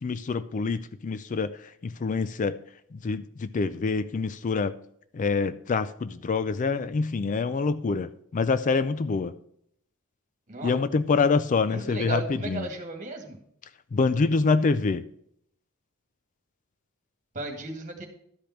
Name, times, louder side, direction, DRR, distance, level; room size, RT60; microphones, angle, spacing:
voice 1, 0.0-1.5 1.8-2.5 2.9-4.7 5.1-9.3 10.6-12.7 13.9-15.0, left 4 dB, 35° left, 14 dB, 0.4 m, -26 dB
voice 2, 11.6-13.4 17.3-18.1, right 2 dB, 35° right, 3 dB, 2.0 m, -35 dB
12.0 x 5.1 x 5.8 m, 0.69 s
head